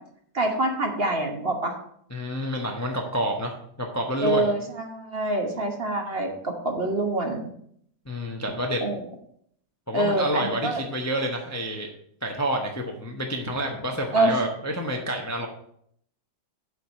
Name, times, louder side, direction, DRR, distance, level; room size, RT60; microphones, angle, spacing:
voice 1, 0.3-1.7 4.2-7.4 8.8-9.0 9.9-10.8 14.1-14.4, right 2 dB, 40° right, 3 dB, 1.2 m, -25 dB
voice 2, 2.1-4.5 8.1-8.8 9.9-11.9 12.2-15.5, equal, 15° left, 2 dB, 0.7 m, -28 dB
7.8 x 4.8 x 7.1 m, 0.68 s
omnidirectional pair, 1.8 m